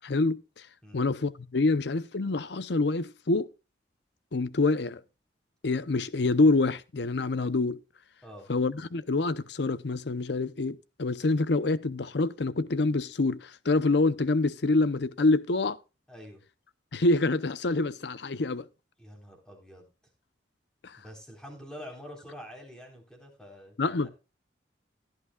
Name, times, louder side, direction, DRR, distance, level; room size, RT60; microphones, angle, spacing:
voice 1, 0.0-0.7 0.9-3.5 4.3-5.0 5.6-7.8 8.5-15.8 16.9-18.7 20.8-21.0 23.8-24.1, left 3 dB, 60° left, 0.7 m, -26 dB
voice 2, 16.1-16.4 19.0-19.9 20.9-24.1, equal, 5° left, 3.9 m, -46 dB
16.0 x 11.0 x 2.3 m
head